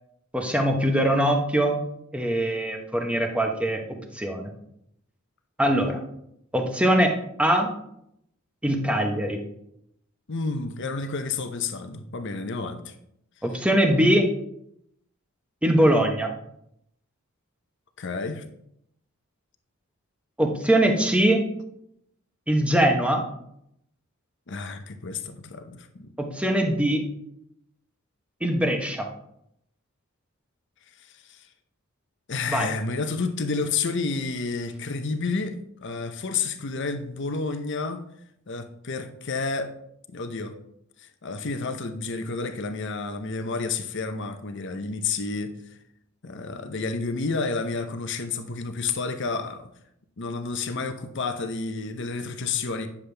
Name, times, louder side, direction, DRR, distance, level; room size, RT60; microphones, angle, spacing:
voice 1, 0.3-1.8 2.1-4.5 5.6-6.0 6.5-7.7 8.6-9.4 13.4-14.3 15.6-16.3 20.4-21.5 22.5-23.2 26.2-27.0 28.4-29.1 32.5-32.7, right 1 dB, 5° right, 3 dB, 1.0 m, -22 dB
voice 2, 10.3-12.9 18.0-18.4 24.5-26.1 31.3-31.4 32.3-38.0 38.5-39.7 40.1-40.5 41.2-45.5 46.2-49.7 50.2-52.9, left 4 dB, 55° left, 8 dB, 0.8 m, -30 dB
9.8 x 7.1 x 3.4 m, 0.76 s
head